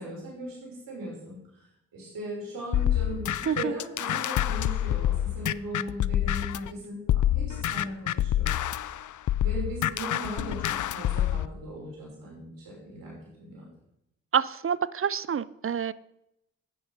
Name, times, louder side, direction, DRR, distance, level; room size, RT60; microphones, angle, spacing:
voice 1, 0.0-1.4 1.9-8.5 9.3-13.7, right 1 dB, 85° right, -4 dB, 5.5 m, -38 dB
sound 1, 2.7-6.7 7.1-11.5, left 12 dB, 65° left, 0.5 m, -27 dB
voice 2, 14.3-15.9, right 7 dB, 40° right, 19 dB, 0.6 m, -27 dB
9.4 x 9.4 x 5.5 m, 0.82 s
supercardioid pair, 45°, 33 cm